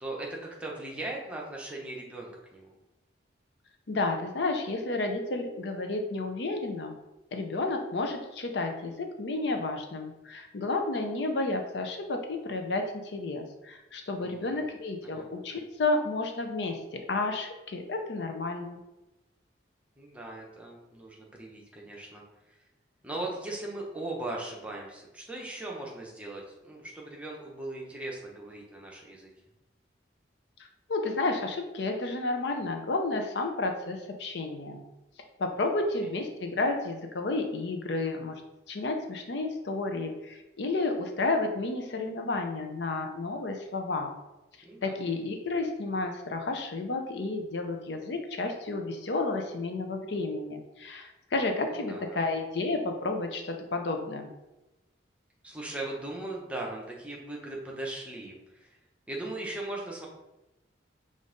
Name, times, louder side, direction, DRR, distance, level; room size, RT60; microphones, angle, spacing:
voice 1, 0.0-2.7 14.2-14.7 15.0-15.3 20.0-22.6 23.0-29.3 44.6-45.0 51.7-52.2 55.4-58.8 59.1-60.1, right 2 dB, 5° right, -2 dB, 0.7 m, -39 dB
voice 2, 3.9-6.9 7.3-18.8 30.9-34.8 35.4-38.4 38.7-44.2 44.8-54.3, left 2 dB, 65° left, 4 dB, 0.6 m, -31 dB
5.2 x 2.5 x 3.8 m, 0.98 s
head